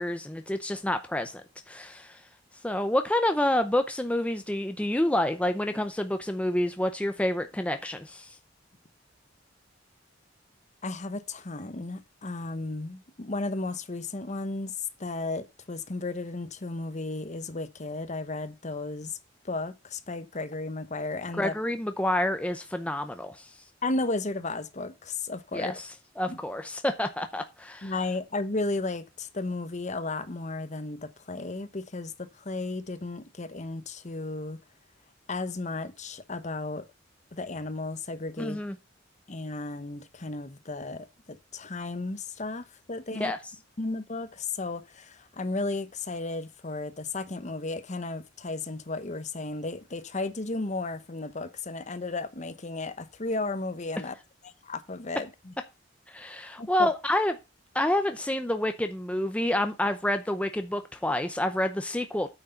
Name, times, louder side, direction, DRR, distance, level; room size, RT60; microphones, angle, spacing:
voice 1, 0.0-2.2 2.6-8.3 21.4-23.5 25.5-25.7 26.2-27.9 38.4-38.7 43.2-43.4 56.1-57.3 57.7-62.3, left 1 dB, 5° left, 0.7 m, -28 dB
voice 2, 10.8-14.7 15.0-19.2 19.4-21.5 23.8-25.8 26.3-26.4 27.8-34.6 35.3-36.8 37.3-38.6 39.3-43.3 43.8-54.1 54.4-55.5 56.6-56.9, left 2 dB, 40° left, 1.0 m, -34 dB
8.9 x 6.3 x 5.7 m
head